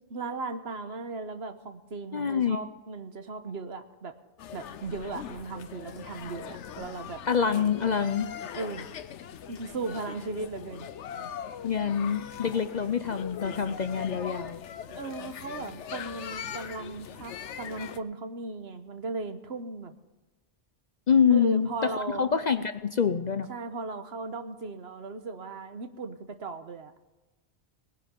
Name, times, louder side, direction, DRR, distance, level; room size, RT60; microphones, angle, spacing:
voice 1, 0.1-4.2 4.5-7.2 8.5-8.9 9.5-10.9 14.9-20.0 21.3-22.3 23.5-26.9, right 3 dB, 65° right, 8 dB, 1.4 m, -37 dB
voice 2, 2.1-2.6 7.3-8.3 11.6-14.6 21.1-23.5, left 7 dB, 45° left, 10 dB, 0.6 m, -26 dB
sound 1, 4.4-18.0, left 8 dB, 85° left, 1.0 m, -41 dB
19.5 x 10.5 x 5.3 m, 1.2 s
omnidirectional pair, 1.2 m